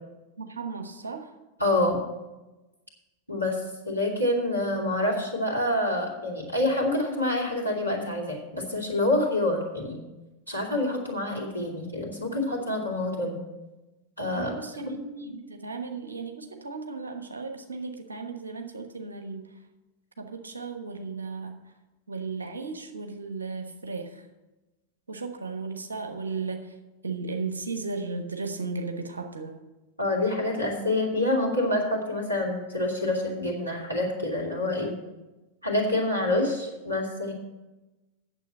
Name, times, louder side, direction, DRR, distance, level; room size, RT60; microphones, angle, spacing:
voice 1, 0.4-1.3 14.4-19.5 20.2-21.5 22.1-24.2 25.1-26.7 27.0-29.6, right 4 dB, 75° right, 6 dB, 1.2 m, -35 dB
voice 2, 1.6-2.0 3.3-3.6 3.8-10.0 10.5-13.4 14.2-14.6 15.2-15.3 30.0-34.9 35.6-37.3, left 1 dB, 90° left, -2 dB, 2.5 m, -27 dB
9.1 x 7.2 x 7.5 m, 1.1 s
figure-of-eight pair, 90°, 0 cm